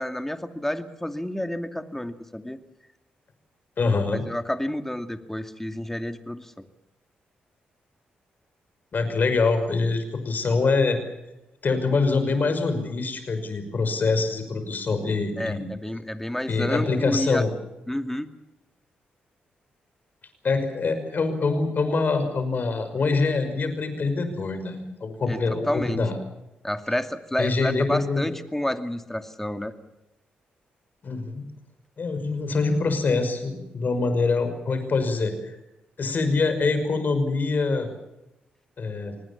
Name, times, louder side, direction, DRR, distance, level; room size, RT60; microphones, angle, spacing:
voice 1, 0.0-2.6 4.1-6.7 15.4-17.4 17.9-18.3 25.3-26.0 26.6-29.7, left 1 dB, 10° left, 8 dB, 2.4 m, -29 dB
voice 2, 3.8-4.2 8.9-11.0 11.6-15.6 16.5-17.5 20.4-26.2 27.4-28.2 31.0-31.4 32.0-35.6 36.0-37.9 38.8-39.2, left 3 dB, 55° left, 9 dB, 5.8 m, -24 dB
26.0 x 19.5 x 7.2 m, 0.93 s
supercardioid pair, 50°, 4 cm